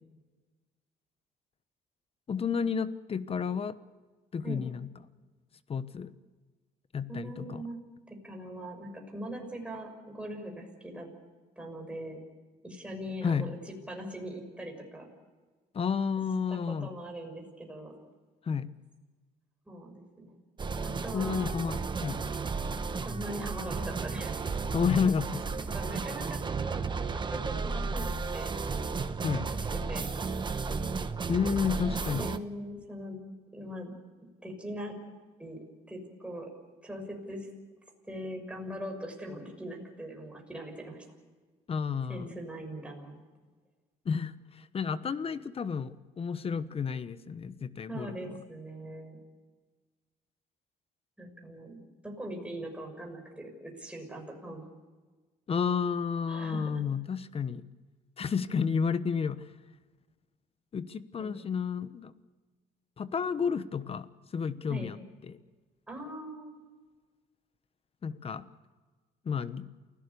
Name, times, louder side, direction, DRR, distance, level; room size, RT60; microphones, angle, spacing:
voice 1, 2.3-3.8 4.3-4.9 5.7-6.1 6.9-7.6 13.2-13.5 15.7-16.9 18.4-18.7 21.1-22.2 24.7-25.6 29.2-29.5 31.3-32.4 41.7-42.3 44.0-48.4 55.5-57.6 58.2-59.5 60.7-62.1 63.0-64.1 64.3-65.0 65.2-65.4 68.0-68.5 69.2-69.7, left 6 dB, 35° left, 14 dB, 1.1 m, -31 dB
voice 2, 7.1-7.8 8.1-11.1 11.6-12.2 12.6-15.1 16.5-17.9 19.7-20.3 20.8-21.5 23.0-24.6 25.6-26.8 27.1-28.5 29.2-29.6 29.9-30.1 32.1-33.2 33.5-34.0 34.4-35.0 35.4-35.6 35.9-36.5 36.8-37.5 38.1-41.0 42.1-43.2 47.9-49.2 51.2-54.7 56.3-56.8 61.2-61.5 64.7-64.9 65.9-66.5, right 1 dB, 5° right, 2 dB, 6.1 m, -41 dB
sound 1, 20.6-32.4, right 4 dB, 25° right, 1.2 m, -33 dB
28.5 x 16.5 x 6.9 m, 1.3 s
cardioid pair, 110°, 17 cm